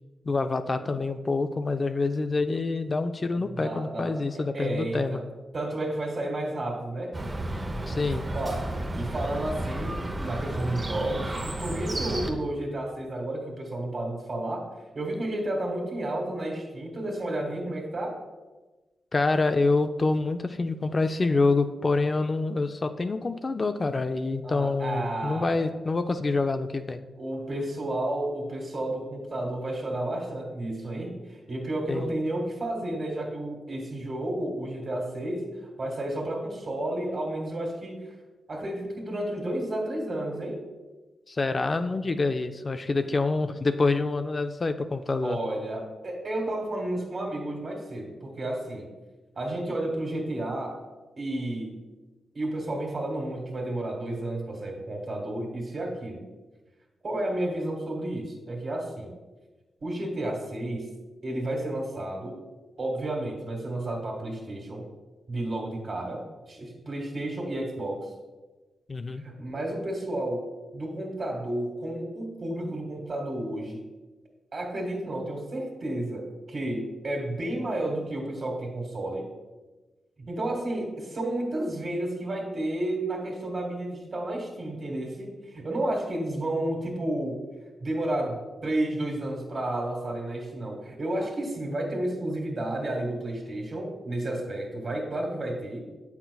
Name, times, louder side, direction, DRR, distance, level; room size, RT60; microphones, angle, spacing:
voice 1, 0.3-5.2 7.9-8.2 19.1-27.0 31.9-32.1 41.3-45.4 68.9-69.2, left 3 dB, 45° left, 8 dB, 0.4 m, -26 dB
voice 2, 3.5-5.2 5.5-7.1 8.3-14.7 14.9-18.2 24.4-25.7 27.2-35.5 35.8-38.0 38.5-40.6 42.9-43.2 45.2-48.9 49.4-50.8 51.2-51.8 52.3-56.2 57.0-59.1 59.8-60.9 61.2-62.4 62.8-64.9 65.3-68.1 69.2-70.5 70.7-73.8 74.5-79.3 80.3-87.4 87.8-95.8, right 1 dB, 55° right, 1 dB, 1.8 m, -31 dB
Chirp tweet, 7.1-12.3, right 1 dB, 35° right, 0.7 m, -32 dB
7.9 x 5.8 x 2.3 m, 1.2 s
cardioid pair, 50°, 0 cm